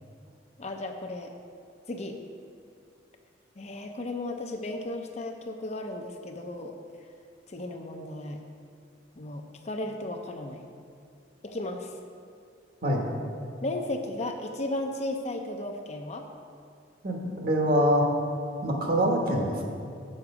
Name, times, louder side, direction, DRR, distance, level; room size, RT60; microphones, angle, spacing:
voice 1, 0.6-1.3 1.9-2.2 3.6-6.7 7.5-8.4 9.2-10.7 11.4-11.9 13.6-16.3, left 1 dB, 35° left, 4 dB, 0.6 m, -35 dB
voice 2, 17.0-18.0 18.6-19.6, equal, 50° right, 0 dB, 1.3 m, -24 dB
7.8 x 6.5 x 4.8 m, 2.3 s
head